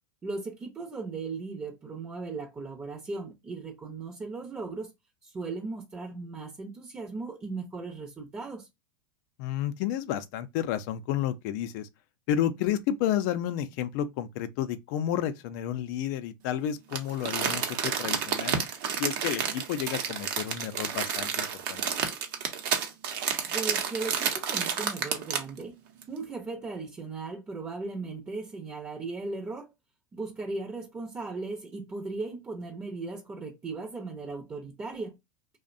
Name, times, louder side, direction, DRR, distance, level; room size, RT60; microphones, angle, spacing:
voice 1, 0.2-4.9 5.2-8.7 23.5-25.7 26.1-29.7 30.1-35.2, right 3 dB, 20° right, 0.6 m, -37 dB
voice 2, 9.4-11.9 12.3-18.6 19.0-21.8, left 10 dB, 60° left, 0.4 m, -31 dB
Crumpling crinkling, 16.9-25.6 26.0-26.1, right 7 dB, 60° right, 0.7 m, -30 dB
2.5 x 2.1 x 2.4 m
hypercardioid pair, 105°, 11 cm